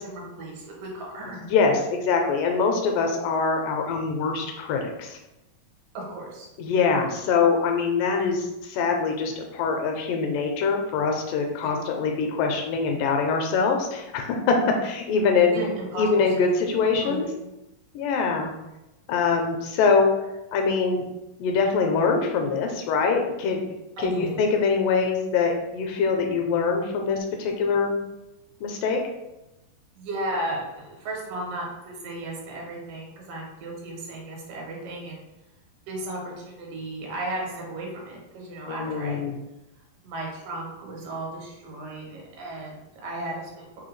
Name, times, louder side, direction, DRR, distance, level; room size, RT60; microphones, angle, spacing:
voice 1, 0.0-1.4 5.9-6.5 11.6-11.7 15.5-16.1 16.4-16.7 17.0-17.3 24.0-24.4 29.9-35.2 35.9-39.2 40.0-43.8, right 1 dB, 75° right, -2 dB, 2.5 m, -35 dB
voice 2, 1.4-5.2 6.6-14.6 14.8-15.6 16.0-17.3 17.9-18.5 19.1-20.1 20.5-21.0 21.4-23.6 24.0-28.0 28.6-29.0 38.7-39.3, left 5 dB, 80° left, 3 dB, 2.2 m, -24 dB
5.4 x 2.2 x 3.1 m, 0.95 s
omnidirectional pair, 3.9 m